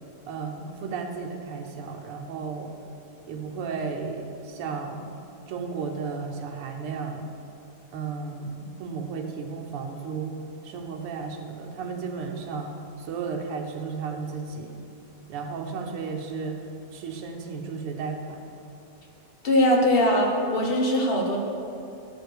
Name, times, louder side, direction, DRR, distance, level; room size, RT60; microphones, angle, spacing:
voice 1, 0.3-2.7 3.2-5.1 5.5-7.2 7.9-10.4 10.6-14.7 15.3-16.6 16.9-18.4, right 5 dB, 80° right, 2 dB, 1.8 m, -34 dB
voice 2, 19.4-21.4, left 1 dB, 45° left, 0 dB, 0.7 m, -21 dB
12.0 x 5.0 x 6.4 m, 2.7 s
omnidirectional pair, 2.4 m